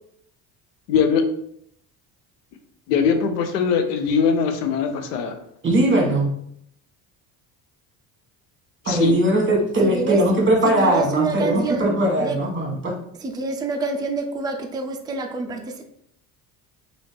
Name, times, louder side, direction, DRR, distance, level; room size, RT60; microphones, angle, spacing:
voice 1, 0.9-1.2 2.9-5.3 8.9-9.1, left 6 dB, 90° left, 6 dB, 0.6 m, -21 dB
voice 2, 5.6-6.3 8.8-12.9, right 1 dB, 25° right, 0 dB, 1.2 m, -20 dB
voice 3, 9.8-10.2 10.6-11.9 12.2-12.4 13.4-15.8, right 3 dB, 10° right, 3 dB, 0.4 m, -26 dB
3.1 x 2.6 x 3.2 m, 0.70 s
hypercardioid pair, 65°, 46 cm